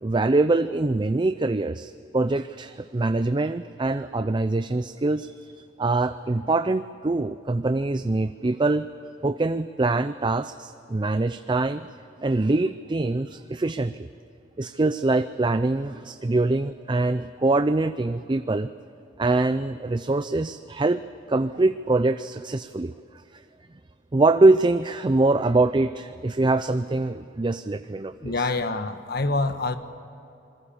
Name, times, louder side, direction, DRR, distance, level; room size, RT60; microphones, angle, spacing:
voice 1, 0.0-8.9 9.2-11.9 12.2-14.1 14.6-18.7 19.2-21.0 21.3-22.9 24.1-28.5, right 2 dB, 25° right, 11 dB, 0.5 m, -24 dB
voice 2, 28.2-29.8, left 3 dB, 60° left, 9 dB, 1.3 m, -26 dB
27.0 x 22.0 x 7.2 m, 2.8 s
head